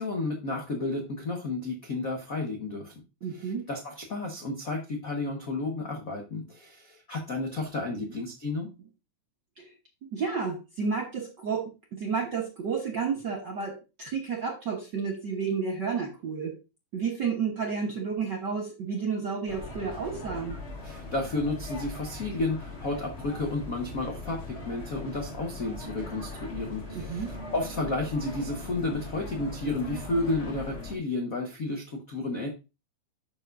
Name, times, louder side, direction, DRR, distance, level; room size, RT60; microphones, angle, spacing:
voice 1, 0.0-2.9 3.3-8.7 20.8-32.5, left 2 dB, 75° left, 2 dB, 0.7 m, -32 dB
voice 2, 3.2-3.7 9.6-9.7 10.1-16.6 16.9-20.6 26.9-27.3 29.9-30.0, right 5 dB, 65° right, 2 dB, 1.1 m, -31 dB
sound 1, 19.5-31.0, left 2 dB, 25° left, 1.5 m, -40 dB
10.5 x 7.0 x 2.6 m, 0.28 s
omnidirectional pair, 3.5 m